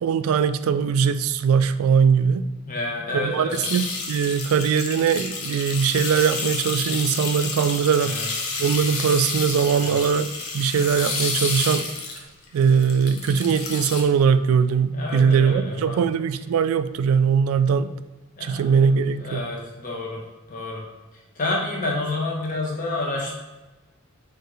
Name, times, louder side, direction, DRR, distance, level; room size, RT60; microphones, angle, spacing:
voice 1, 0.0-2.4 3.1-8.2 8.6-11.9 12.5-17.9 18.4-19.5, right 6 dB, 85° right, 14 dB, 0.3 m, -21 dB
voice 2, 2.7-3.6 8.0-8.3 9.7-10.0 14.9-16.0 16.4-16.5 18.4-20.2 20.5-20.8 21.4-23.3, left 2 dB, 40° left, -2 dB, 1.1 m, -29 dB
sound 1, 3.5-14.0, left 3 dB, 75° left, 0.8 m, -30 dB
4.6 x 3.6 x 3.2 m, 1.1 s
head